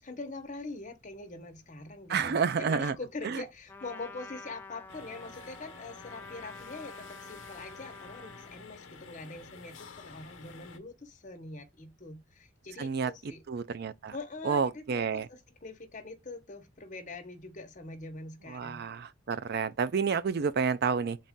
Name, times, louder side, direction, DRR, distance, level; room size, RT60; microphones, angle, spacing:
voice 1, 0.0-13.4 14.1-18.8, left 3 dB, 40° left, 1.0 m, -43 dB
voice 2, 2.1-3.0 3.2-3.4 12.8-14.1 14.4-15.3 18.5-21.2, right 6 dB, 55° right, 0.4 m, -30 dB
Trumpet, 3.7-8.6, left 3 dB, 10° left, 0.5 m, -48 dB
sound 1, 4.9-10.8, left 5 dB, 80° left, 0.9 m, -50 dB
4.1 x 2.4 x 3.6 m
head